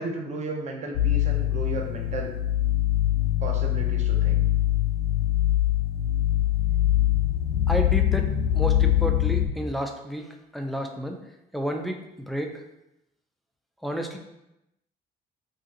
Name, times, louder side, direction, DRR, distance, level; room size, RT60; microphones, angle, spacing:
voice 1, 0.0-2.3 3.4-4.4, right 3 dB, 45° right, 1 dB, 0.6 m, -34 dB
sound 1, 0.9-9.5, left 13 dB, 75° left, 0.5 m, -23 dB
voice 2, 7.7-11.2 11.5-12.6 13.8-14.2, equal, ahead, 3 dB, 0.3 m, -31 dB
2.5 x 2.5 x 3.9 m, 0.89 s
cardioid pair, 110°, 17 cm